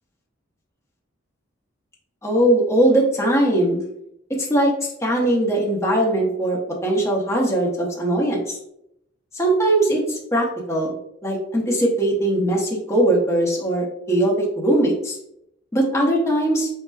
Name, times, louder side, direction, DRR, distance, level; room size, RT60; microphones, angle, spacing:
voice 1, 2.2-3.8 4.3-8.5 9.3-10.9 11.2-15.2 15.7-16.7, right 1 dB, 15° left, -2 dB, 0.7 m, -20 dB
5.4 x 2.1 x 2.3 m, 0.78 s
head